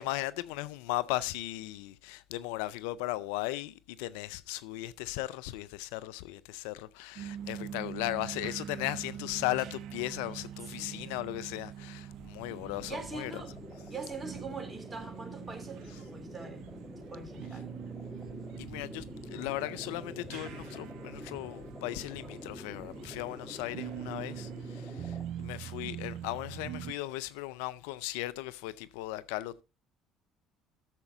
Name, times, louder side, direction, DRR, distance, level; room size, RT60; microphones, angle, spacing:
voice 1, 0.0-13.4 18.6-29.6, left 17 dB, 80° left, 0.4 m, -37 dB
sound 1, 7.2-26.9, right 10 dB, 65° right, 0.6 m, -44 dB
voice 2, 10.7-11.2 12.9-13.5 13.9-16.7 17.0-17.8, right 4 dB, 25° right, 3.0 m, -43 dB
sound 2, 12.1-25.2, left 3 dB, 25° left, 2.3 m, -48 dB
13.0 x 7.0 x 3.8 m
hypercardioid pair, 65°, 0 cm